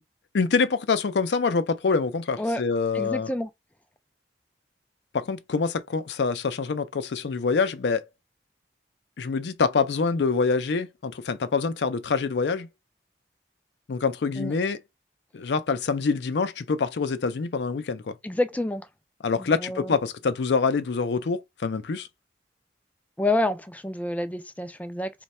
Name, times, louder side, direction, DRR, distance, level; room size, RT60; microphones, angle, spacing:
voice 1, 0.3-3.3 5.1-8.1 9.2-12.7 13.9-14.8 15.3-18.2 19.2-22.1, left 4 dB, 75° left, 0.4 m, -25 dB
voice 2, 2.9-3.5 14.4-14.5 18.2-18.9 19.4-20.0 23.2-25.1, left 1 dB, 10° left, 0.3 m, -28 dB
3.2 x 2.2 x 4.1 m
head